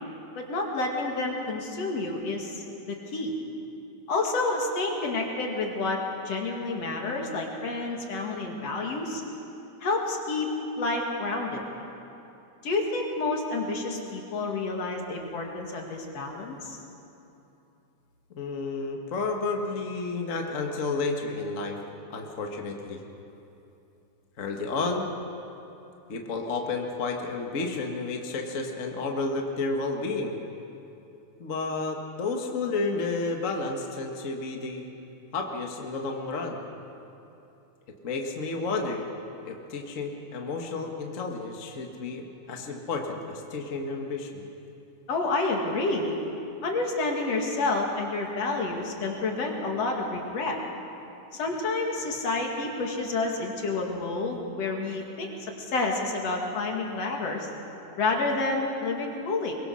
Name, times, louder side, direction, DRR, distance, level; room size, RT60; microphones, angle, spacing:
voice 1, 0.4-3.3 4.1-6.0 6.2-9.2 9.8-10.5 10.8-11.6 12.6-16.8 45.1-46.2 46.6-50.6 51.3-57.5 58.0-59.6, left 3 dB, 60° left, 1 dB, 3.2 m, -29 dB
voice 2, 18.4-21.8 22.1-23.0 24.4-25.1 26.1-30.4 31.4-34.9 35.3-36.6 38.0-39.0 39.5-44.4, left 3 dB, 35° left, 2 dB, 1.3 m, -31 dB
23.0 x 22.5 x 6.3 m, 2.8 s
omnidirectional pair, 3.4 m